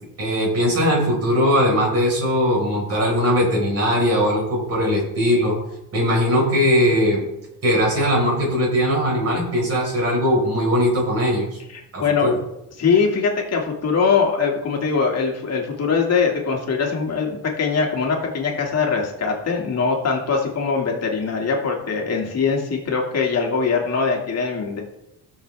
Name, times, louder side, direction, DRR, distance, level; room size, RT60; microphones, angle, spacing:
voice 1, 0.2-5.6 5.9-7.2 7.6-11.6 11.9-12.4, equal, 40° right, -2 dB, 4.7 m, -20 dB
voice 2, 11.7-12.4 12.8-24.8, left 5 dB, 40° left, 0 dB, 2.2 m, -22 dB
17.0 x 6.6 x 3.5 m, 0.86 s
cardioid pair, 150°, 38 cm